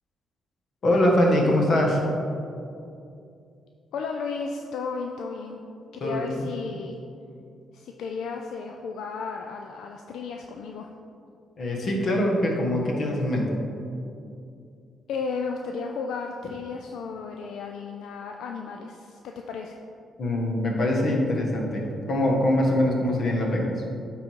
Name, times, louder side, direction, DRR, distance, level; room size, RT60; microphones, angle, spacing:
voice 1, 0.8-2.0 6.0-6.5 11.6-13.6 20.2-23.7, left 1 dB, 55° left, 0 dB, 1.5 m, -23 dB
voice 2, 3.9-5.6 5.9-7.0 7.7-10.9 15.1-19.8, left 5 dB, 80° left, 3 dB, 0.4 m, -34 dB
9.5 x 3.9 x 4.6 m, 2.5 s
cardioid pair, 75°, 0 cm